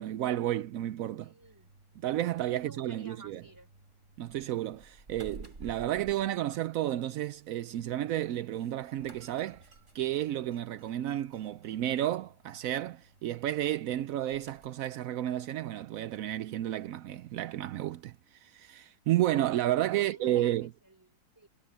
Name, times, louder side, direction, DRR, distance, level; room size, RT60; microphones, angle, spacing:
voice 1, 0.0-1.3 2.0-3.4 4.2-9.6 9.9-20.7, right 13 dB, 75° right, 0.7 m, -32 dB
voice 2, 1.2-1.7 2.5-3.7 19.8-21.5, right 1 dB, 10° right, 3.3 m, -53 dB
sound 1, 1.4-14.7, right 2 dB, 40° right, 4.6 m, -55 dB
omnidirectional pair, 2.0 m